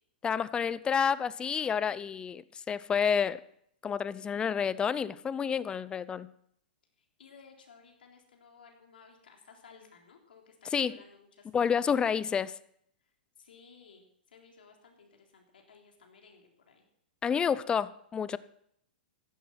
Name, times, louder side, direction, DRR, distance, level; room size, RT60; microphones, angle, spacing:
voice 1, 0.2-3.4 3.8-6.3 10.7-11.0 11.5-12.5 17.2-18.4, left 7 dB, 15° left, 18 dB, 0.6 m, -29 dB
voice 2, 7.0-11.7 13.4-16.8, left 5 dB, 75° left, 2 dB, 3.6 m, -57 dB
15.0 x 11.5 x 6.0 m, 0.71 s
hypercardioid pair, 115°, 5 cm